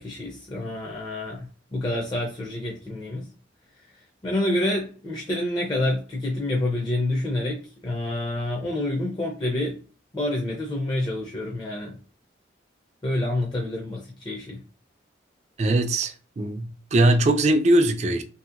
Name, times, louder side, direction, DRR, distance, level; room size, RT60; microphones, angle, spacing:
voice 1, 0.0-3.3 4.2-9.8 10.1-11.9 13.0-14.6, left 1 dB, 25° left, 0.5 m, -28 dB
voice 2, 15.6-18.2, right 1 dB, 35° right, 0.4 m, -21 dB
2.8 x 2.7 x 2.5 m
head